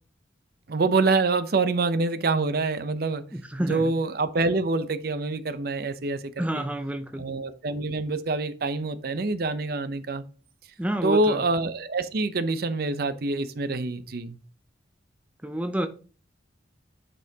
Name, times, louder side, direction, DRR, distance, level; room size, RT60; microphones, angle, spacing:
voice 1, 0.7-3.3 3.7-6.7 7.2-10.2 11.0-14.4, right 3 dB, 55° right, 0.6 m, -26 dB
voice 2, 3.3-3.9 6.4-7.3 10.8-11.4 15.4-15.9, right 1 dB, 5° right, 0.4 m, -29 dB
9.1 x 5.4 x 2.8 m
head